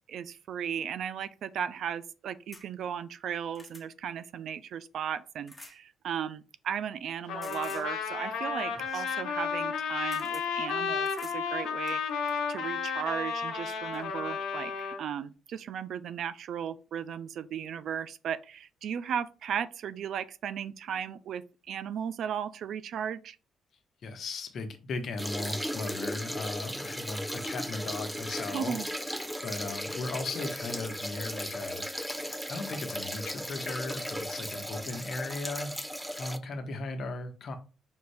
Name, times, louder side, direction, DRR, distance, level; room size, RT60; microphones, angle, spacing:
voice 1, 0.0-23.4 28.5-28.9, right 8 dB, 70° right, 0.3 m, -36 dB
sound 1, 2.5-2.7 3.2-3.9 5.5-5.8 7.4-7.9 9.6-9.7 10.1-10.5 11.0-11.4 11.9-12.4 13.4-13.5 13.9-14.0, left 2 dB, 15° left, 1.2 m, -50 dB
Trumpet, 7.3-15.0, left 6 dB, 85° left, 1.0 m, -32 dB
voice 2, 24.0-28.8 29.4-31.9 32.5-35.8 36.2-37.5, left 3 dB, 60° left, 0.9 m, -37 dB
sound 2, 25.2-36.4, equal, 5° right, 0.4 m, -36 dB
5.1 x 2.6 x 3.2 m
cardioid pair, 90°, 0 cm